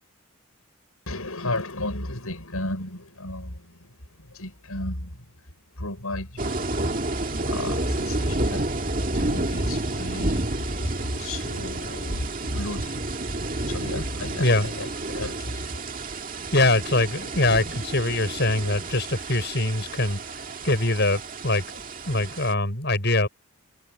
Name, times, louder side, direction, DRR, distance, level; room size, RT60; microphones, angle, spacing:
voice 1, 1.1-6.7 7.4-8.7 9.1-15.8, left 1 dB, 80° left, 6.9 m, -34 dB
sound 1, 6.4-22.5, right 2 dB, 40° right, 2.1 m, -30 dB
voice 2, 14.4-14.7 16.5-20.2 20.6-23.3, left 2 dB, 50° left, 7.0 m, -23 dB
head